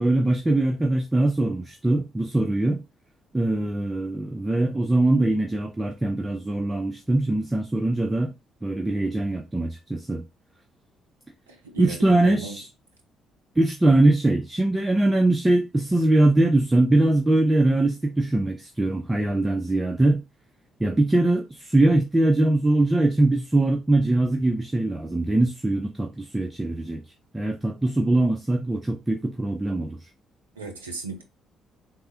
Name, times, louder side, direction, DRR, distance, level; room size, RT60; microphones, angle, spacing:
voice 1, 0.0-2.8 3.3-8.3 8.6-10.2 11.8-12.7 13.6-20.2 20.8-27.0 27.3-30.0, right 2 dB, 15° right, 0.4 m, -22 dB
voice 2, 11.6-12.6 30.6-31.2, right 4 dB, 85° right, 0.4 m, -35 dB
3.4 x 2.1 x 2.7 m
figure-of-eight pair, 45°, 0 cm